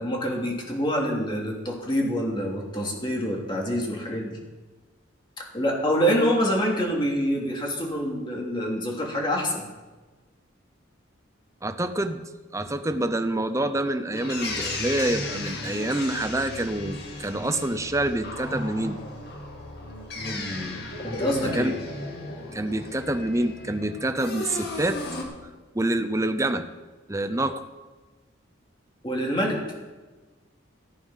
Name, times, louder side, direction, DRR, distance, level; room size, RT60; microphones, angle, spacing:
voice 1, 0.0-4.4 5.4-9.7 20.2-21.8 29.0-29.6, equal, 25° left, -1 dB, 2.7 m, -26 dB
voice 2, 11.6-12.2 12.5-19.0 21.5-21.7 22.5-25.0 25.7-26.7 27.1-27.6, right 1 dB, 15° right, 8 dB, 0.7 m, -27 dB
sound 1, 14.1-25.2, left 2 dB, 55° left, 2.1 m, -35 dB
15.0 x 9.3 x 5.7 m, 1.3 s
head